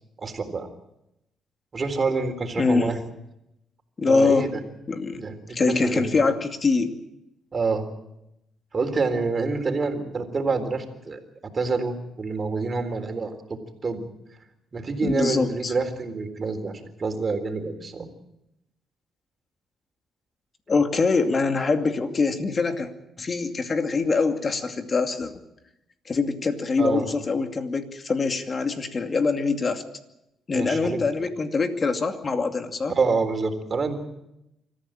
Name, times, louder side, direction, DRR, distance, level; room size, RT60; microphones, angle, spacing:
voice 1, 0.2-0.7 1.7-3.0 4.1-4.5 5.1-6.1 7.5-7.8 8.7-11.2 11.5-14.0 14.7-18.1 26.8-27.0 30.5-31.3 32.9-34.0, right 4 dB, 35° right, 6 dB, 3.9 m, -27 dB
voice 2, 2.6-3.0 4.0-4.5 4.9-5.2 5.5-6.9 15.0-15.7 20.7-22.9 23.2-25.3 26.1-29.8 30.5-32.9, left 4 dB, 35° left, 6 dB, 2.5 m, -24 dB
25.5 x 14.5 x 8.9 m, 0.85 s
cardioid pair, 90°, 0 cm